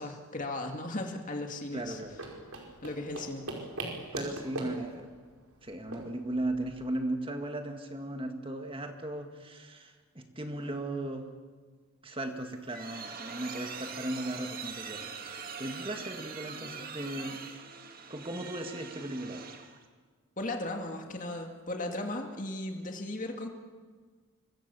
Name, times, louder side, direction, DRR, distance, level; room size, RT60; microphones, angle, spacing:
voice 1, 0.0-2.0 2.8-3.4 20.4-23.5, left 2 dB, 35° left, 3 dB, 2.3 m, -36 dB
voice 2, 1.7-2.2 4.1-5.1 5.6-11.3 12.0-17.4 18.1-19.5, right 1 dB, 25° right, 5 dB, 2.0 m, -37 dB
sound 1, 1.8-7.0, right 2 dB, 80° right, 4.9 m, -41 dB
sound 2, 12.3-19.8, right 6 dB, 40° right, 2.1 m, -43 dB
26.0 x 22.5 x 7.0 m, 1.5 s
head